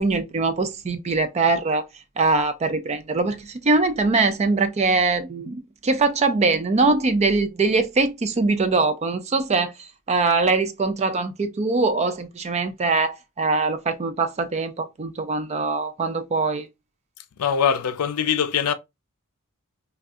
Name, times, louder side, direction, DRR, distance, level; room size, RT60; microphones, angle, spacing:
voice 1, 0.0-1.8 2.2-16.7, right 3 dB, 30° right, 0.4 m, -22 dB
voice 2, 17.4-18.7, left 8 dB, 85° left, 0.4 m, -22 dB
3.5 x 2.3 x 2.5 m
head